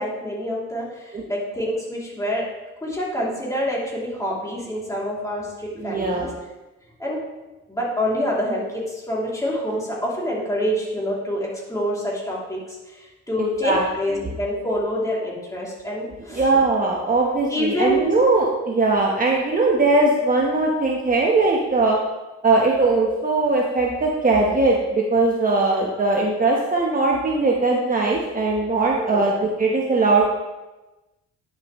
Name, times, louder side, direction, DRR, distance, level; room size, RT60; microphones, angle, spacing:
voice 1, 0.0-2.5 2.8-6.3 7.0-7.2 7.7-12.6 12.9-13.0 13.3-16.4 17.5-18.2 28.9-29.3, equal, 10° left, -5 dB, 3.0 m, -26 dB
voice 2, 5.7-6.3 13.4-13.8 14.2-14.3 16.3-22.0 22.4-30.3, right 3 dB, 30° right, -2 dB, 1.2 m, -20 dB
10.0 x 6.6 x 3.2 m, 1.1 s
cardioid pair, 90°, 30 cm